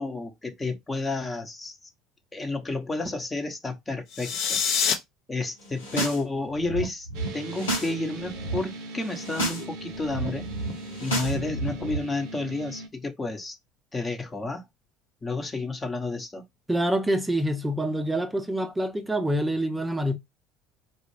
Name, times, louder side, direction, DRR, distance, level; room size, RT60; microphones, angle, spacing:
voice 1, 0.0-1.7 2.3-4.6 5.3-7.1 7.3-10.5 11.0-13.5 13.9-14.6 15.2-16.4, left 2 dB, 20° left, 1.0 m, -31 dB
sound 1, 4.1-4.9, left 7 dB, 60° left, 0.7 m, -25 dB
sound 2, 5.6-6.2 6.5-7.9 8.2-8.6 9.0-9.6 9.9-12.0, right 1 dB, 85° left, 1.2 m, -31 dB
sound 3, 7.1-12.9, right 2 dB, 60° right, 0.7 m, -40 dB
voice 2, 16.7-20.2, right 1 dB, 10° right, 0.6 m, -26 dB
4.2 x 2.3 x 3.2 m
hypercardioid pair, 65°, 0 cm